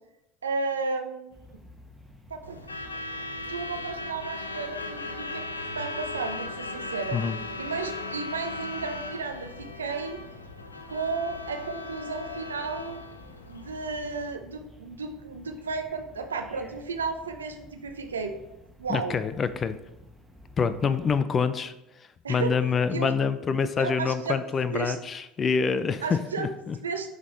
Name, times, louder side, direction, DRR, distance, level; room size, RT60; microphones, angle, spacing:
voice 1, 0.4-1.4 2.3-3.1 3.5-5.4 5.7-7.2 7.6-10.2 10.9-13.0 13.5-18.3 18.8-19.2 22.2-22.6 22.9-23.1 23.8-24.4 24.7-25.0 26.0-26.5 26.7-27.2, right 4 dB, 85° right, 5 dB, 0.6 m, -33 dB
sound 1, 1.3-21.2, left 1 dB, 5° right, 1.3 m, -52 dB
Truck / Alarm, 2.4-14.4, left 2 dB, 90° left, 0.4 m, -37 dB
voice 2, 18.9-19.8 20.6-21.7 22.3-26.8, left 6 dB, 35° left, 13 dB, 0.5 m, -26 dB
11.0 x 3.8 x 3.2 m, 0.88 s
figure-of-eight pair, 70°, 0 cm